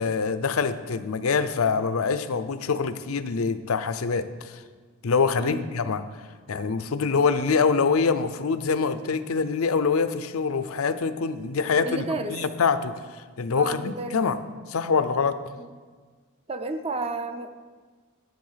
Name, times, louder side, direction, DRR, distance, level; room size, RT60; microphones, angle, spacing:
voice 1, 0.0-4.6 5.0-12.0 12.3-14.4 14.7-15.4, left 5 dB, 75° left, 12 dB, 0.6 m, -25 dB
voice 2, 11.9-12.4 13.6-14.2 15.6-15.7 16.5-17.6, right 2 dB, 25° right, 8 dB, 0.6 m, -32 dB
10.5 x 6.8 x 5.7 m, 1.5 s
head